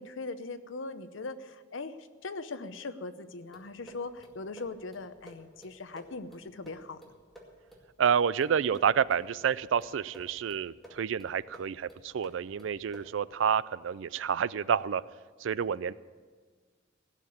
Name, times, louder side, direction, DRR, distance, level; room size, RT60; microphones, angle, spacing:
voice 1, 0.0-7.0, left 3 dB, 75° left, 11 dB, 0.8 m, -40 dB
sound 1, 3.5-13.3, equal, ahead, 2.1 m, -54 dB
voice 2, 8.0-15.0 15.4-15.9, right 7 dB, 70° right, 19 dB, 0.4 m, -29 dB
16.5 x 6.7 x 8.6 m, 1.5 s
head